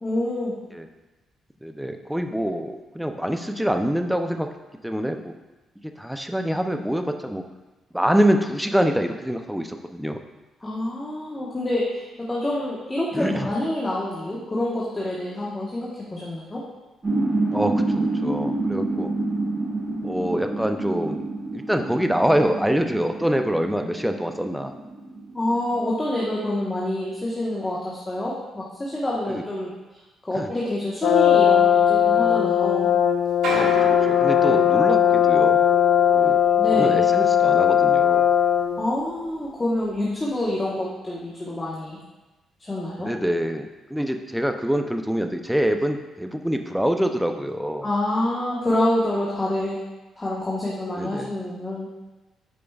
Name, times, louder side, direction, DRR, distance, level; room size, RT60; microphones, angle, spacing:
voice 1, 0.0-0.6 10.6-16.6 25.3-29.7 30.3-32.9 36.6-37.1 38.8-42.0 42.6-43.1 47.8-49.8 50.2-51.9, left 1 dB, 20° left, -6 dB, 1.2 m, -27 dB
voice 2, 1.6-4.5 4.8-5.3 5.8-7.4 7.9-10.2 13.1-13.5 17.5-19.1 20.0-21.3 21.5-24.7 29.3-29.4 30.3-30.5 33.5-35.6 36.1-36.4 36.7-38.3 43.0-47.9 51.0-51.3, equal, ahead, 5 dB, 0.5 m, -25 dB
sound 1, 17.0-26.3, right 2 dB, 25° right, 1.6 m, -28 dB
Brass instrument, 31.0-38.8, left 9 dB, 75° left, 0.4 m, -18 dB
sound 2, 31.4-31.5 31.8-32.8 33.3-38.6 38.9-39.5 40.1-40.3, right 1 dB, 75° right, 1.7 m, -34 dB
8.5 x 5.0 x 2.4 m, 1.1 s
cardioid pair, 90°, 0 cm